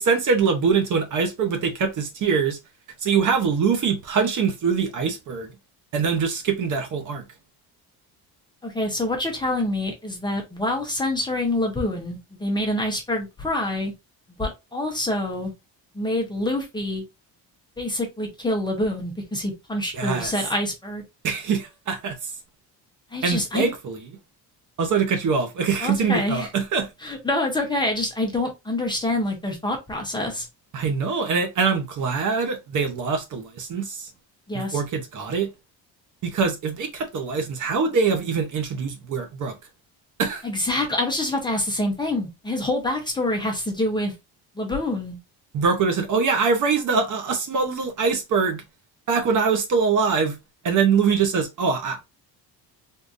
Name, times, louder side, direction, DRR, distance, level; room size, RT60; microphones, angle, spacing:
voice 1, 0.0-2.6 3.0-5.5 5.9-7.2 19.9-20.3 21.2-22.3 23.2-24.0 24.8-26.9 30.7-34.1 34.7-35.5 36.2-39.5 40.2-40.5 45.5-48.6 49.1-50.4 50.6-52.0, right 5 dB, 45° right, 0.8 m, -23 dB
voice 2, 8.6-13.9 14.4-15.5 15.9-17.0 17.8-21.0 23.1-23.7 25.8-26.5 27.0-30.5 34.5-34.8 40.4-44.1 44.6-45.2, left 1 dB, 10° left, 0.7 m, -26 dB
3.6 x 2.6 x 2.5 m
cardioid pair, 150°, 41 cm